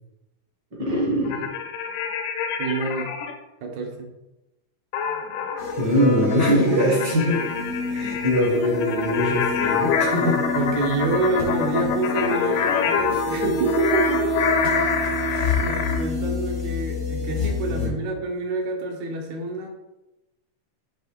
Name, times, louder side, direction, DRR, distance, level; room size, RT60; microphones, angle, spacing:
voice 1, 0.7-1.5 5.8-7.4 7.9-10.4 17.7-18.0, equal, 55° right, -3 dB, 1.2 m, -22 dB
sound 1, 1.3-3.3 4.9-16.0, left 7 dB, 85° left, 2.1 m, -26 dB
voice 2, 2.6-3.1 3.6-4.1 10.6-14.3 15.3-19.7, right 2 dB, 70° right, 2 dB, 2.2 m, -27 dB
sound 2, 5.6-17.9, left 1 dB, 55° left, 0.5 m, -28 dB
8.0 x 3.0 x 4.6 m, 0.96 s
omnidirectional pair, 3.5 m